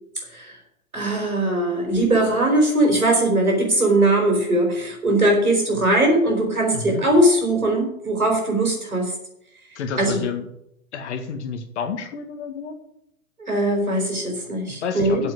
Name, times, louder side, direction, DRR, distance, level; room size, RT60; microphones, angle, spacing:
voice 1, 0.9-9.1 10.0-10.2 13.4-15.3, right 1 dB, 85° right, 2 dB, 4.6 m, -20 dB
voice 2, 9.8-10.4 10.9-12.7 14.7-15.3, left 6 dB, 55° left, 7 dB, 2.0 m, -30 dB
7.9 x 7.8 x 8.6 m, 0.78 s
figure-of-eight pair, 105°, 42 cm